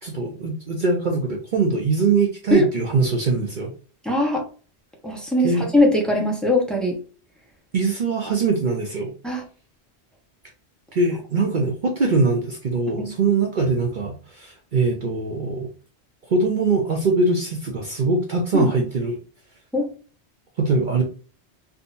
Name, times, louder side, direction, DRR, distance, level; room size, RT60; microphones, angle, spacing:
voice 1, 0.0-3.7 5.4-5.6 7.7-9.1 10.9-15.7 16.3-19.2 20.6-21.0, right 3 dB, 50° right, 1 dB, 0.7 m, -22 dB
voice 2, 4.0-4.4 5.0-7.0 9.2-9.4 13.0-13.1 18.5-18.7 19.7-19.9, left 1 dB, ahead, 0 dB, 0.8 m, -21 dB
3.6 x 2.7 x 2.5 m, 0.38 s
omnidirectional pair, 1.1 m